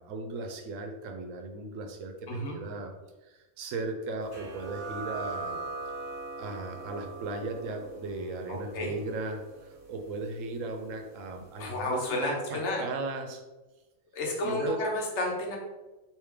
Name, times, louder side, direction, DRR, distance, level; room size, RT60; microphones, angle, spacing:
voice 1, 0.0-2.9 3.2-5.6 6.4-13.4 14.4-14.8, right 3 dB, 80° right, 4 dB, 1.0 m, -37 dB
sound 1, 4.3-11.6, right 3 dB, 40° right, 1.7 m, -41 dB
voice 2, 8.5-8.9 11.6-12.9 14.1-15.6, left 1 dB, 65° left, 0 dB, 1.0 m, -31 dB
3.4 x 2.9 x 3.2 m, 1.1 s
omnidirectional pair, 1.3 m